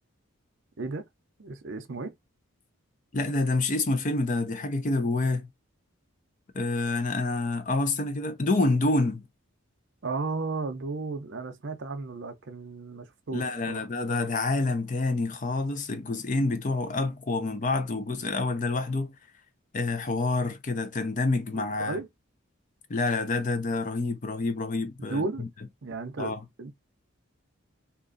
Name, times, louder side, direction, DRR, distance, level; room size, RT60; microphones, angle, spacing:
voice 1, 0.8-1.1 1.4-2.1 10.0-13.8 21.5-22.1 25.1-25.5 25.8-26.7, right 3 dB, 55° right, 0.6 m, -34 dB
voice 2, 3.1-5.5 6.5-9.2 13.3-19.1 19.7-22.0 22.9-25.5 26.2-26.4, left 3 dB, 35° left, 0.5 m, -27 dB
2.8 x 2.5 x 3.8 m
head